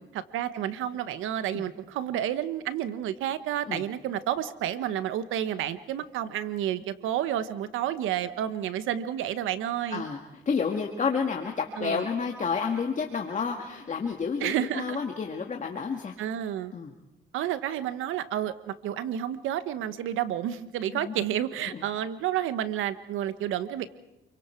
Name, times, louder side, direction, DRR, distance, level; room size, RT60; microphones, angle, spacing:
voice 1, 0.1-10.1 11.8-12.0 14.4-15.0 16.2-16.7 17.3-23.9, right 11 dB, 90° right, 13 dB, 1.2 m, -30 dB
voice 2, 9.9-16.1 16.7-16.9 20.9-21.2 21.7-21.8, left 5 dB, 40° left, 3 dB, 2.0 m, -30 dB
29.0 x 23.5 x 4.6 m, 0.97 s
cardioid pair, 90°, 20 cm